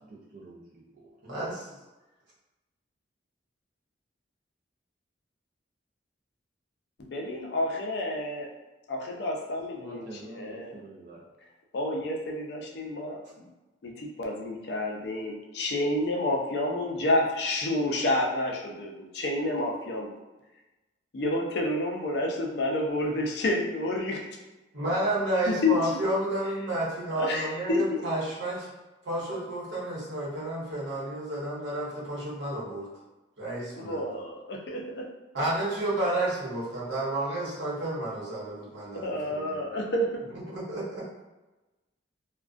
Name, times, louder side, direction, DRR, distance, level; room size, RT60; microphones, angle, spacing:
voice 1, 0.0-1.1 9.8-11.2, right 2 dB, 45° right, -5 dB, 0.3 m, -46 dB
voice 2, 1.2-1.6 24.7-28.7 29.0-32.9 33.4-34.0 35.3-39.6 40.3-41.1, right 1 dB, 75° right, -8 dB, 0.9 m, -31 dB
voice 3, 7.0-8.5 8.9-10.0 10.3-10.8 11.7-13.5 13.8-20.2 21.1-24.3 25.5-26.0 27.2-28.0 33.8-35.1 39.0-40.2, left 1 dB, 60° left, 0 dB, 0.4 m, -29 dB
2.4 x 2.1 x 2.4 m, 1.1 s
head